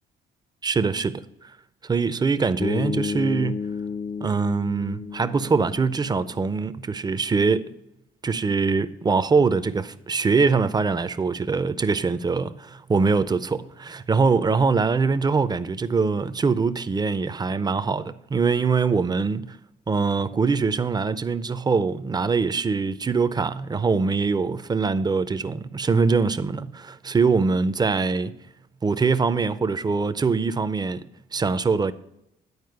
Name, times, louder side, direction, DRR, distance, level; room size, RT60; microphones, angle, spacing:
voice 1, 0.6-1.2 1.8-3.6 4.2-7.7 8.2-19.6 19.9-28.3 28.8-31.0 31.3-31.9, right 4 dB, 20° right, 0.5 m, -23 dB
Bass guitar, 2.6-6.7, left 6 dB, 40° left, 0.6 m, -32 dB
9.5 x 4.5 x 6.6 m
cardioid pair, 90°, 20 cm